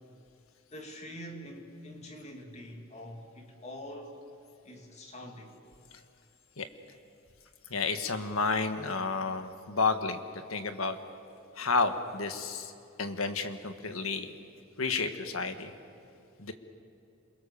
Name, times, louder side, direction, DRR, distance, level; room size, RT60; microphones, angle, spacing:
voice 1, 0.7-4.2 4.6-5.6, equal, 35° left, 2.6 m, -45 dB
voice 2, 7.7-10.2 10.5-11.0 11.5-12.7 13.0-14.3 14.8-15.7 16.4-16.5, left 4 dB, 90° left, 1.6 m, -31 dB
28.0 x 22.5 x 7.0 m
head